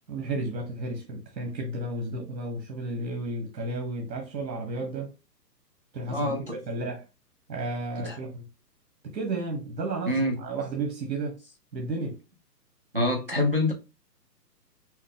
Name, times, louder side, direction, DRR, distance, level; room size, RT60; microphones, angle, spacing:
voice 1, 0.1-5.1 5.9-7.0 7.5-8.5 9.0-10.1 10.4-11.4 11.7-12.2, right 2 dB, 85° right, 1.6 m, -32 dB
voice 2, 6.1-6.6 8.0-8.2 10.1-10.4 12.9-13.7, left 1 dB, 40° right, 0.4 m, -26 dB
5.4 x 2.0 x 3.5 m
hypercardioid pair, 170°, 49 cm